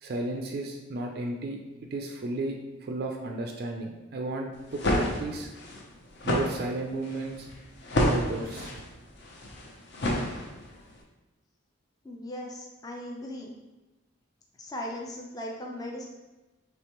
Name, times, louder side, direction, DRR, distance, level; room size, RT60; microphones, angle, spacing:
voice 1, 0.0-1.6 1.9-5.5 6.2-7.5 8.0-8.7, right 2 dB, 50° right, 2 dB, 0.3 m, -33 dB
sound 1, 4.5-10.8, left 1 dB, 55° left, 0.7 m, -30 dB
voice 2, 12.0-13.5 14.6-16.1, left 1 dB, 20° left, -1 dB, 0.4 m, -38 dB
5.0 x 3.3 x 2.9 m, 1.1 s
head